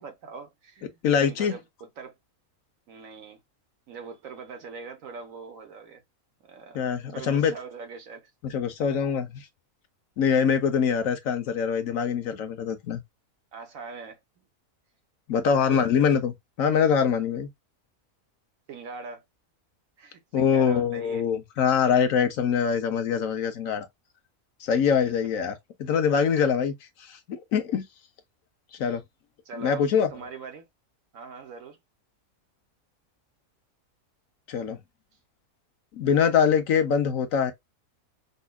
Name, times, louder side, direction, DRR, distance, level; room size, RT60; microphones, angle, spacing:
voice 1, 0.0-2.1 2.9-3.4 3.9-6.0 6.5-8.3 13.5-14.5 15.4-15.8 18.7-19.2 20.0-21.2 29.4-30.7 31.1-31.8, right 5 dB, 65° right, 1.4 m, -42 dB
voice 2, 1.0-1.5 6.7-7.5 8.4-9.4 10.2-13.0 15.3-17.5 20.3-23.9 24.6-25.5 25.8-27.8 28.8-29.0 29.6-30.1 34.5-34.8 35.9-37.5, left 7 dB, 70° left, 1.2 m, -24 dB
5.3 x 2.3 x 2.2 m
omnidirectional pair, 1.5 m